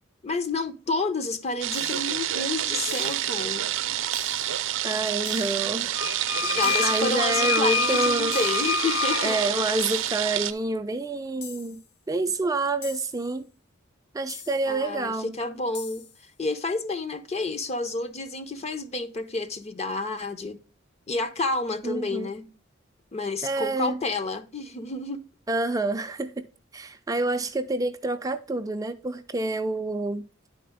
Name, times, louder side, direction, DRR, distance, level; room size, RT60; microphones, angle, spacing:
voice 1, 0.2-3.7 6.6-9.4 14.7-16.0 16.4-20.6 21.1-22.5 23.1-25.2, left 3 dB, 35° left, 0.7 m, -30 dB
sound 1, 1.6-10.5, right 12 dB, 75° right, 0.5 m, -28 dB
sound 2, 1.7-2.2 2.9-3.4 4.1-4.6 5.3-5.8 6.6-7.2 8.3-8.8 9.8-10.3 11.4-11.9 12.8-13.3 14.3-14.8 15.7-16.3, left 7 dB, 60° left, 0.9 m, -43 dB
voice 2, 4.8-6.0 6.4-6.6 6.8-8.4 9.2-11.8 12.1-13.5 14.1-15.3 21.8-22.3 23.4-24.0 25.5-26.5 26.7-30.2, right 2 dB, 20° right, 0.4 m, -28 dB
sound 3, 5.9-10.1, left 5 dB, 90° left, 0.4 m, -28 dB
10.0 x 4.2 x 3.5 m
head